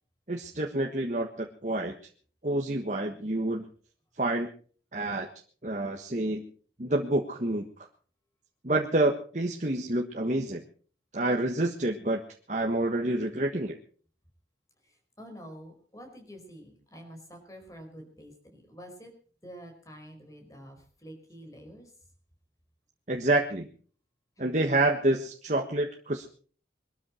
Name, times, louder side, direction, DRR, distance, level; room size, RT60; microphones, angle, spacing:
voice 1, 0.3-1.9 2.4-3.7 4.2-4.5 4.9-5.3 5.6-6.4 6.8-7.6 8.6-10.6 11.1-12.2 12.5-13.8 23.1-23.7 24.4-26.3, right 2 dB, 45° right, 2 dB, 1.4 m, -28 dB
voice 2, 15.2-19.1 19.4-21.9 24.4-24.5, equal, 20° left, 4 dB, 4.8 m, -48 dB
23.0 x 13.0 x 4.4 m, 0.43 s
head